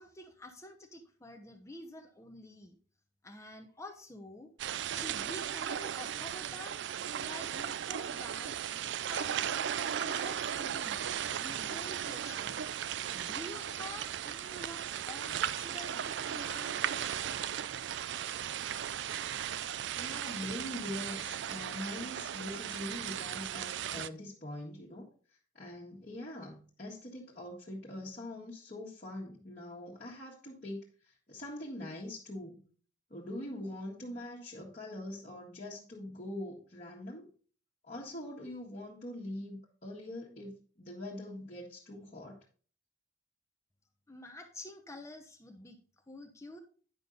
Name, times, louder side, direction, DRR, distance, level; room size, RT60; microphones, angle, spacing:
voice 1, 0.0-2.8 3.2-4.5 4.9-6.8 7.2-8.5 9.1-11.0 11.4-12.6 13.1-16.9 44.1-45.8 46.1-46.6, left 1 dB, 15° left, 5 dB, 0.7 m, -48 dB
sound 1, 4.6-24.1, right 9 dB, 65° right, 0.4 m, -36 dB
voice 2, 20.0-25.1 25.5-32.6 33.1-37.3 37.8-42.4, left 1 dB, 40° left, -6 dB, 1.5 m, -43 dB
9.8 x 5.4 x 3.8 m, 0.41 s
head